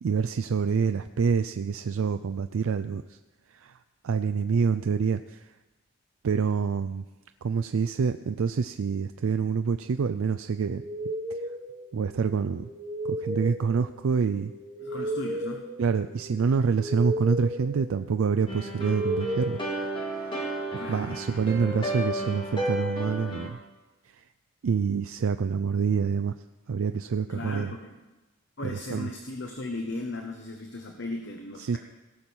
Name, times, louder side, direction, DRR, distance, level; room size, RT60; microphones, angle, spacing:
voice 1, 0.0-3.2 3.5-3.8 4.0-5.5 6.2-7.0 7.4-10.8 11.3-11.4 11.9-12.7 13.0-14.5 15.8-19.6 20.1-20.4 20.9-23.6 24.1-24.2 24.6-26.3 26.7-27.8 28.6-29.1 31.6-31.8, right 5 dB, 75° right, 10 dB, 0.4 m, -27 dB
sound 1, 10.7-20.4, right 1 dB, 35° right, 1.4 m, -35 dB
voice 2, 14.8-15.7 20.8-21.2 27.3-28.0 28.6-31.8, left 2 dB, 55° left, 3 dB, 1.0 m, -36 dB
sound 2, 18.5-23.5, right 1 dB, 25° left, 2.0 m, -33 dB
17.5 x 6.1 x 7.1 m, 1.1 s
head